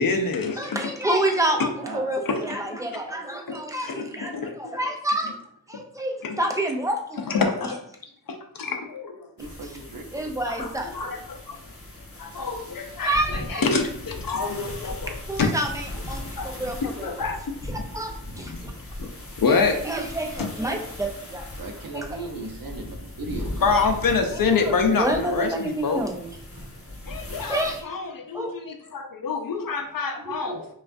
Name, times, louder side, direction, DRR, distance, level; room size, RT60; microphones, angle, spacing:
voice 1, 0.0-0.8 2.3-2.4 3.5-4.8 5.7-5.8 6.2-6.4 7.3-7.8 8.3-9.3 10.5-11.6 12.2-15.5 16.4-16.5 16.8-17.4 18.4-18.7 19.0-19.1 19.4-19.8 20.4-20.5 23.6-26.0 27.1-30.7, left 4 dB, 60° left, 5 dB, 0.6 m, -26 dB
voice 2, 0.6-5.3 5.7-7.2 10.1-11.2 13.0-13.6 15.3-17.2 17.7-18.7 19.5-19.6 19.8-21.5 21.9-22.1 24.3-26.3 27.5-27.8 28.3-28.5 30.2-30.6, right 1 dB, 10° right, 2 dB, 0.5 m, -28 dB
voice 3, 1.5-2.4 9.4-10.3 12.3-12.4 21.6-23.8, right 3 dB, 60° right, 3 dB, 0.7 m, -37 dB
sound 1, 9.4-27.8, left 1 dB, 35° left, 0.9 m, -38 dB
5.5 x 2.4 x 2.5 m, 0.68 s
wide cardioid pair, 110°, 38 cm